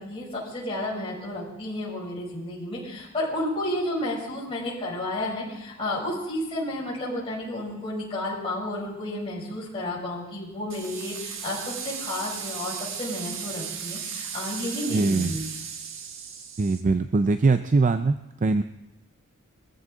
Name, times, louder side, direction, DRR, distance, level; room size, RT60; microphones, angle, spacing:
voice 1, 0.0-15.4, left 1 dB, 25° left, -8 dB, 5.9 m, -31 dB
sound 1, 10.7-16.8, right 7 dB, 65° right, 1.6 m, -36 dB
voice 2, 14.9-15.4 16.6-18.6, right 3 dB, 35° right, 10 dB, 0.4 m, -22 dB
21.5 x 14.5 x 3.8 m, 0.93 s
head